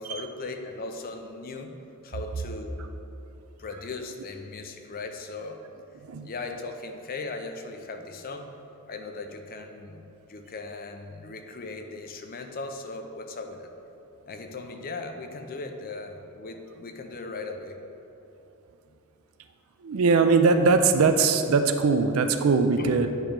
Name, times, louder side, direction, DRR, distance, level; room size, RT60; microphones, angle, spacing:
voice 1, 0.0-1.7 2.0-2.9 3.6-5.6 6.2-8.5 8.9-10.0 10.3-13.7 14.3-17.8 22.8-22.9, left 3 dB, 40° left, 5 dB, 0.5 m, -38 dB
voice 2, 19.8-23.1, right 4 dB, 65° right, 7 dB, 0.4 m, -21 dB
9.0 x 3.0 x 5.0 m, 2.8 s
head